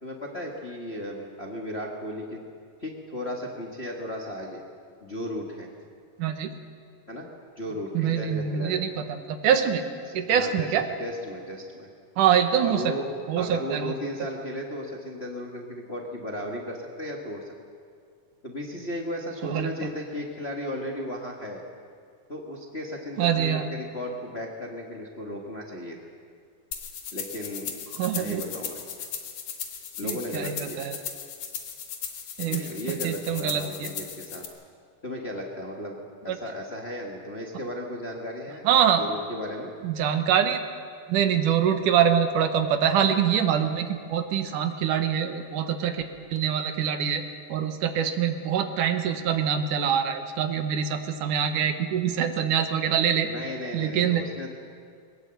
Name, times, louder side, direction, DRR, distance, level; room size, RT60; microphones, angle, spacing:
voice 1, 0.0-2.4 2.8-4.6 5.0-5.7 7.1-7.3 7.6-8.8 10.0-10.7 11.0-11.9 12.6-17.5 18.4-21.6 22.3-26.0 27.1-27.8 28.1-28.8 30.0-30.8 32.5-34.4 35.0-36.0 36.2-38.6 39.0-39.7 53.2-54.5, equal, 25° left, -1 dB, 1.4 m, -35 dB
voice 2, 6.2-6.5 7.9-9.8 10.1-10.9 12.2-12.9 13.3-13.9 19.4-19.7 23.2-23.7 28.0-28.4 30.0-31.0 32.4-33.9 36.3-36.4 38.6-39.1 39.8-40.6 41.1-46.0 46.3-47.2 47.5-53.3 53.7-54.2, right 8 dB, 80° right, 7 dB, 2.7 m, -24 dB
sound 1, 26.7-34.5, left 7 dB, 80° left, 3.5 m, -37 dB
21.5 x 19.5 x 7.8 m, 2.1 s
omnidirectional pair, 3.7 m